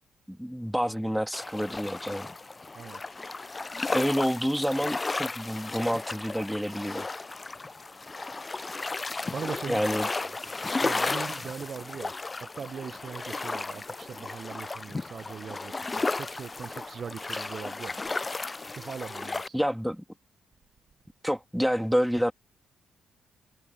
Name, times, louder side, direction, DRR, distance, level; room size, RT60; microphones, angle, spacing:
voice 1, 0.3-2.3 3.9-7.1 9.7-10.1 19.5-20.0 21.2-22.3, equal, ahead, 3.0 m, -28 dB
sound 1, 1.3-19.5, left 3 dB, 30° left, 0.6 m, -34 dB
voice 2, 9.3-9.8 10.1-10.3 10.8-12.1 12.4-17.9 18.7-19.6, right 6 dB, 55° right, 1.1 m, -40 dB
hypercardioid pair, 40°, 0 cm